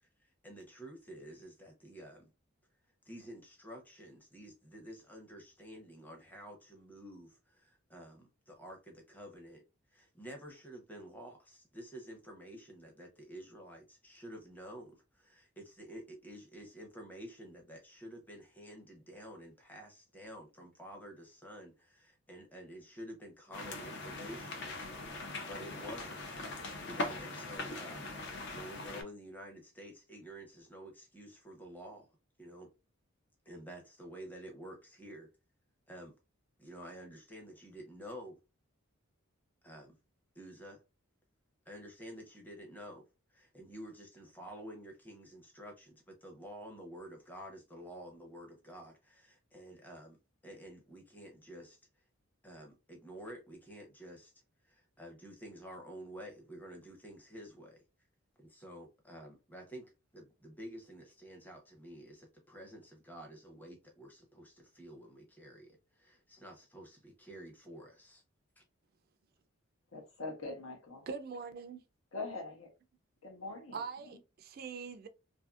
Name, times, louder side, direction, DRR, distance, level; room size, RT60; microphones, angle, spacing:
voice 1, 0.0-2.3 3.1-9.6 9.9-24.6 25.5-32.1 32.4-32.7 33.5-35.3 35.9-36.1 36.6-38.4 39.6-40.0 40.3-40.8 41.7-43.0 43.3-50.2 50.4-51.8 52.4-54.3 54.6-57.8 58.4-68.2 68.6-68.7, equal, 10° left, 0.7 m, -50 dB
sound 1, 23.5-29.0, left 2 dB, 55° left, 0.6 m, -41 dB
voice 2, 69.9-71.1 72.1-72.7 73.2-73.8, left 3 dB, 80° left, 0.9 m, -42 dB
voice 3, 71.1-71.8 73.7-75.1, right 5 dB, 45° right, 0.3 m, -42 dB
2.7 x 2.5 x 2.3 m
head